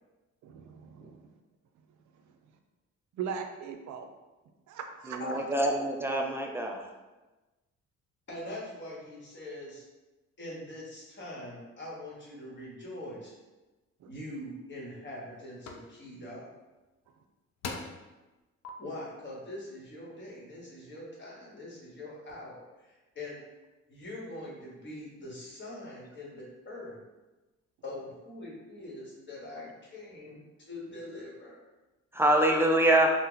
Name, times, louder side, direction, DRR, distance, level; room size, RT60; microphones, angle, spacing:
voice 1, 0.4-1.2 3.1-4.1 4.7-5.4 14.0-14.1, right 7 dB, 70° right, 5 dB, 0.5 m, -39 dB
voice 2, 5.1-6.8 32.1-33.1, right 1 dB, 10° right, 1 dB, 0.4 m, -25 dB
voice 3, 8.3-9.8 10.4-13.3 14.0-16.5 18.8-23.4 23.9-27.0 27.8-31.6, left 1 dB, 40° left, -4 dB, 1.1 m, -43 dB
sound 1, 14.3-14.4 15.0-15.3 15.7-15.9 17.1-17.2 17.6-18.1 18.6-18.7, left 4 dB, 60° left, 0.5 m, -39 dB
2.8 x 2.1 x 3.7 m, 1.1 s
cardioid pair, 90°, 30 cm